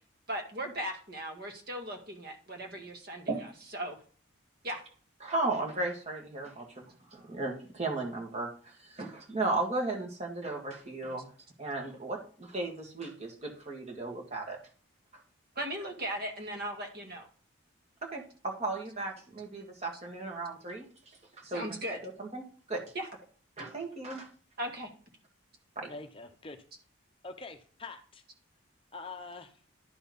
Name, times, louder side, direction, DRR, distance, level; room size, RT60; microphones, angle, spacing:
voice 1, 0.3-3.3 3.7-4.0 4.6-4.8 15.6-17.3 21.5-22.0 22.9-23.1 24.6-24.9, right 1 dB, 50° right, 3 dB, 1.9 m, -37 dB
voice 2, 5.2-11.3 11.6-14.6 18.0-21.6 22.0-22.8 23.6-24.3 25.8-25.9, right 2 dB, 30° right, 0 dB, 1.9 m, -35 dB
voice 3, 25.9-26.6 27.2-28.2 28.9-29.6, left 3 dB, 25° left, 6 dB, 0.7 m, -44 dB
11.0 x 4.4 x 5.3 m, 0.43 s
head